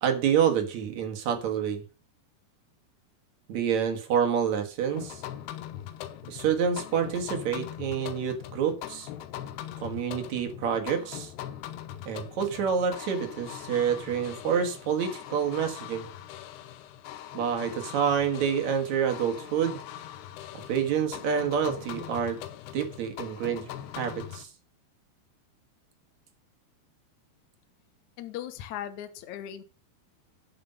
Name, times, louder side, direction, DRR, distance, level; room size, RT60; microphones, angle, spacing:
voice 1, 0.0-1.8 3.5-5.2 6.3-9.1 9.8-11.3 12.1-16.1 17.3-19.8 20.7-22.4 22.7-23.7 24.0-24.5, right 7 dB, 55° right, 4 dB, 2.3 m, -28 dB
sound 1, 4.9-24.5, left 11 dB, 85° left, 2.9 m, -41 dB
voice 2, 28.2-29.6, left 10 dB, 65° left, 9 dB, 2.1 m, -38 dB
11.0 x 6.1 x 5.4 m, 0.34 s
omnidirectional pair, 4.6 m